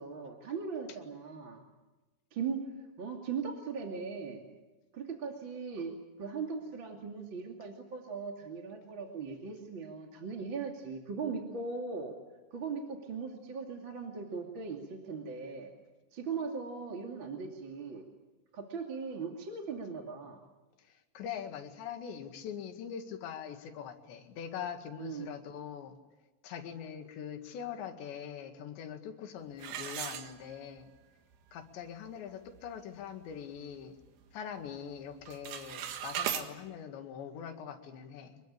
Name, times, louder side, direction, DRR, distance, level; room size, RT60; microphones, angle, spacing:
voice 1, 0.0-1.6 2.3-2.7 3.0-4.4 4.9-12.1 12.5-15.7 16.1-18.0 18.5-20.4 25.0-25.3, right 5 dB, 35° right, 2 dB, 2.6 m, -39 dB
voice 2, 20.9-26.0 26.4-30.9 31.5-34.0 34.3-38.4, left 8 dB, 80° left, 6 dB, 4.3 m, -43 dB
sound 1, 29.6-30.9 31.3-31.4 32.0-32.1 32.5-32.8 33.2-34.3 34.6-34.9 35.2-36.5, right 9 dB, 70° right, 3.7 m, -38 dB
25.5 x 22.5 x 8.8 m, 1.1 s
omnidirectional pair, 5.0 m